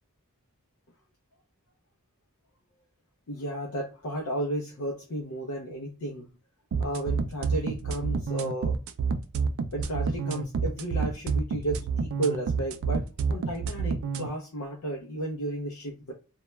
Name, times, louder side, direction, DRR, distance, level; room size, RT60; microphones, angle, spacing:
voice 1, 3.3-6.3 6.8-8.8 9.7-16.1, right 1 dB, 85° left, 0 dB, 0.5 m, -33 dB
sound 1, 6.7-14.3, right 5 dB, 65° right, 0.3 m, -28 dB
2.2 x 2.1 x 3.0 m, 0.33 s
head